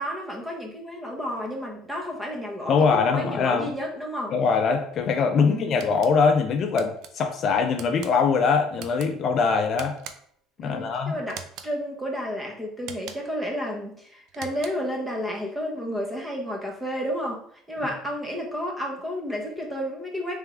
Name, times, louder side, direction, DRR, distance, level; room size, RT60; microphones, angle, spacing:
voice 1, 0.0-4.3 5.3-5.8 10.6-17.4 17.7-20.4, equal, 10° right, 0 dB, 0.9 m, -31 dB
voice 2, 2.7-3.7 4.3-10.0 10.6-11.2, left 5 dB, 45° left, 5 dB, 0.4 m, -22 dB
sound 1, 5.8-6.1 6.8-7.1 7.8-8.1 8.8-9.1 9.8-10.4 11.3-11.7 12.8-13.4 14.3-14.9, right 8 dB, 60° right, 0.5 m, -42 dB
3.5 x 3.4 x 3.4 m, 0.63 s
cardioid pair, 140°, 0 cm